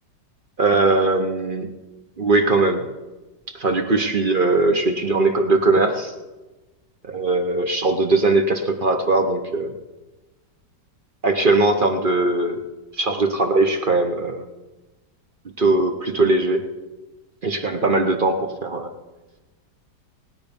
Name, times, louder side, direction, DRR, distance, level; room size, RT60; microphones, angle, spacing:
voice 1, 0.6-1.7 2.2-2.8 3.5-6.1 7.1-9.7 11.2-12.6 13.0-14.4 15.6-16.6 17.4-18.9, right 2 dB, 40° right, 6 dB, 0.8 m, -20 dB
19.0 x 9.2 x 5.2 m, 1.2 s
omnidirectional pair, 1.9 m